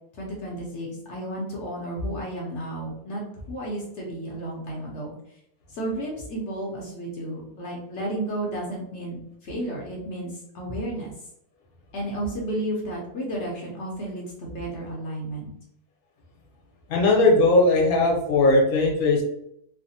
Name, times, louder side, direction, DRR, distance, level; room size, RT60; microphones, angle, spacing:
voice 1, 0.1-3.2 3.5-5.1 5.7-11.1 11.9-15.5, right 1 dB, 55° left, -2 dB, 0.9 m, -32 dB
voice 2, 16.9-19.2, left 2 dB, 75° left, -1 dB, 1.3 m, -19 dB
3.3 x 2.1 x 2.7 m, 0.76 s
omnidirectional pair, 1.6 m